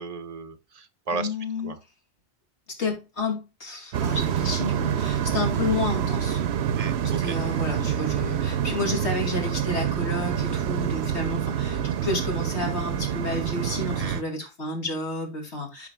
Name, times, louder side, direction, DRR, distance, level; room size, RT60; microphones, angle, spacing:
voice 1, 0.0-1.3 1.6-1.7 6.7-7.4 14.0-14.2, right 4 dB, 35° right, 1.1 m, -34 dB
voice 2, 1.1-1.8 2.8-6.4 7.2-15.9, left 3 dB, 85° left, 2.8 m, -31 dB
sound 1, 3.9-14.2, right 9 dB, 80° right, 0.9 m, -27 dB
13.5 x 4.7 x 2.3 m
omnidirectional pair, 1.1 m